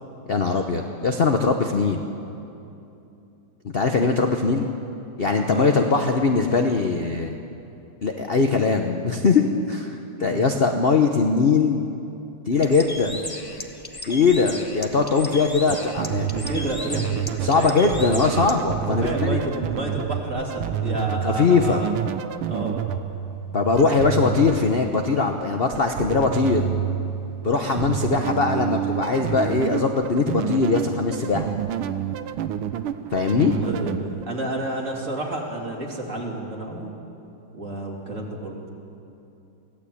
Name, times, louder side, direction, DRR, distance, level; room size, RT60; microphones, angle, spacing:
voice 1, 0.3-2.1 3.7-4.7 5.2-7.4 8.0-11.8 12.5-13.2 14.1-16.3 17.4-19.4 21.2-21.8 23.5-26.7 27.4-31.5 33.1-33.5, left 4 dB, 45° left, 4 dB, 0.8 m, -21 dB
voice 2, 10.2-10.5 16.2-17.7 18.8-21.9 22.5-22.7 33.5-37.0 37.5-38.6, right 1 dB, 35° right, -1 dB, 3.0 m, -30 dB
Bird, 12.5-18.6, left 2 dB, 15° left, 0.9 m, -36 dB
sound 1, 15.7-34.2, right 9 dB, 85° right, 1.6 m, -29 dB
23.5 x 16.0 x 8.6 m, 2.8 s
omnidirectional pair, 2.3 m